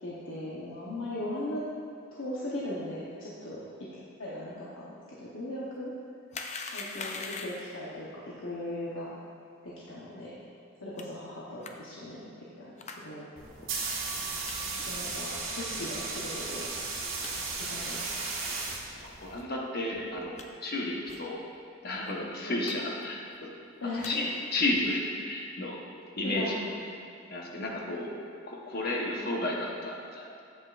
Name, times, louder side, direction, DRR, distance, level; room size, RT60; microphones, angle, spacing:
voice 1, 0.0-1.7 2.1-3.6 4.2-5.9 6.7-9.1 9.6-10.4 10.8-13.3 14.2-14.3 14.7-16.7 17.6-18.1 22.4-22.6 23.8-24.2 26.2-26.6, left 1 dB, 80° left, -7 dB, 0.9 m, -38 dB
sound 1, 6.3-7.8 11.0-11.1 11.6-11.7 12.8-13.0 13.6-13.7 14.4-14.5 15.0-15.3 15.8-15.9 16.5-16.6 16.8-16.9 17.2-17.3 17.9-18.0 18.6-18.8 19.3-19.5 19.9-20.4 21.1-21.3 21.6-21.7 21.9-22.1 22.6-22.8 23.0-23.4 23.8-24.1 24.7-25.0, left 4 dB, 35° left, 0.5 m, -42 dB
sound 2, 13.4-19.4, right 3 dB, 75° right, 1.3 m, -35 dB
voice 2, 18.9-21.4 21.8-23.5 24.0-25.8 26.2-26.6 27.3-28.1 28.4-30.4, left 2 dB, 50° left, -1 dB, 1.0 m, -32 dB
8.1 x 7.9 x 2.5 m, 2.5 s
head